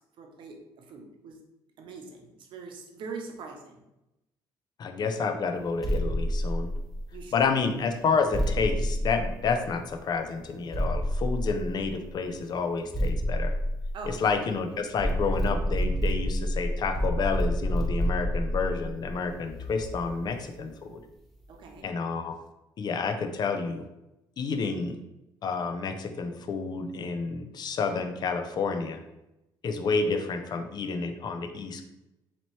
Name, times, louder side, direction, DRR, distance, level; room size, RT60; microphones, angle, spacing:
voice 1, 0.0-1.4 1.8-3.8 7.1-7.3 13.9-14.2 21.5-21.9, right 4 dB, 65° right, 3 dB, 0.8 m, -42 dB
voice 2, 4.8-6.7 7.3-13.5 14.0-21.0 21.8-22.3 22.8-23.8 24.4-25.0 25.4-29.0 29.6-31.8, left 4 dB, 50° left, 7 dB, 0.5 m, -29 dB
sound 1, 5.8-7.3 8.3-9.9 10.7-12.1 12.9-14.5 15.0-20.3, equal, ahead, 0.9 m, -29 dB
4.2 x 2.9 x 3.1 m, 0.92 s
cardioid pair, 90°, 9 cm